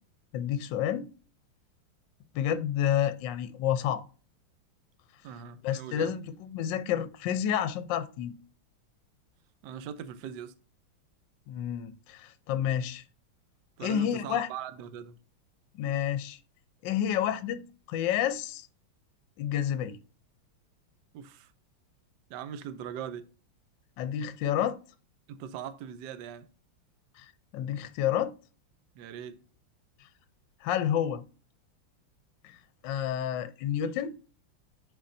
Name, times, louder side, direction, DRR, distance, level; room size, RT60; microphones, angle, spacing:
voice 1, 0.3-1.1 2.3-4.1 5.6-8.4 11.5-13.0 13.8-14.5 15.7-16.4 16.8-18.7 19.4-20.0 24.0-24.8 27.2-28.3 30.6-31.2 32.4-32.6 32.8-34.1, left 10 dB, 70° left, 1.2 m, -30 dB
voice 2, 5.2-6.2 9.6-10.5 13.8-15.2 21.1-21.5 22.3-23.3 25.3-26.5 28.9-29.4, right 9 dB, 70° right, 1.2 m, -40 dB
11.0 x 4.3 x 2.6 m
omnidirectional pair, 2.3 m